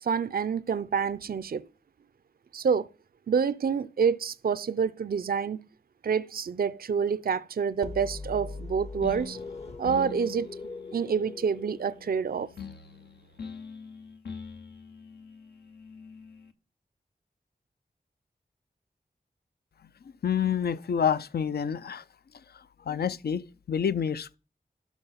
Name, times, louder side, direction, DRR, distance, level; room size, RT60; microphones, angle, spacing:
voice 1, 0.0-1.6 2.5-2.9 3.3-5.6 6.0-9.4 9.8-10.5 10.9-12.5, right 6 dB, 60° right, 0.4 m, -27 dB
sound 1, 7.8-12.6, left 3 dB, 40° left, 0.7 m, -41 dB
sound 2, 9.0-16.5, left 5 dB, 85° left, 0.9 m, -44 dB
voice 2, 20.2-22.0 22.5-24.4, left 7 dB, 70° left, 0.4 m, -28 dB
12.0 x 4.6 x 5.7 m
wide cardioid pair, 50°, 17 cm